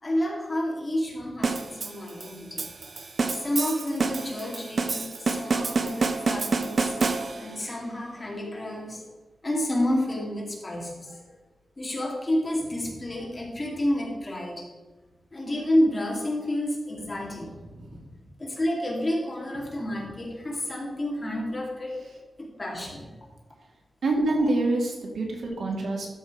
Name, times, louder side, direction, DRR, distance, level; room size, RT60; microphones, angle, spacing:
voice 1, 0.0-2.6 3.3-6.9 7.4-9.0 9.4-11.2 11.8-14.6 15.3-17.5 18.4-22.0 22.4-23.1 24.4-24.5, left 1 dB, 25° left, -2 dB, 2.3 m, -29 dB
sound 1, 1.4-7.6, right 4 dB, 45° right, 0.7 m, -28 dB
voice 2, 17.7-18.1 24.0-26.1, right 2 dB, 80° right, 0 dB, 2.2 m, -26 dB
13.0 x 6.1 x 4.8 m, 1.2 s
wide cardioid pair, 165°, 0 cm